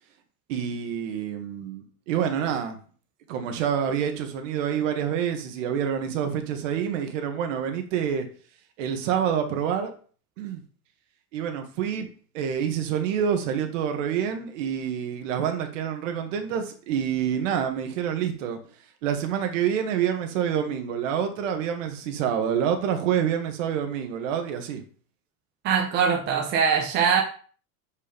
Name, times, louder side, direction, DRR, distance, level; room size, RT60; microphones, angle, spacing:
voice 1, 0.5-2.8 3.3-8.3 8.8-9.9 10.4-10.6 11.3-12.1 12.3-18.6 19.0-24.8, right 8 dB, 55° right, 5 dB, 1.7 m, -27 dB
voice 2, 25.6-27.2, right 6 dB, 25° right, 1 dB, 1.0 m, -22 dB
7.2 x 5.4 x 5.2 m, 0.41 s
supercardioid pair, 175°, 43 cm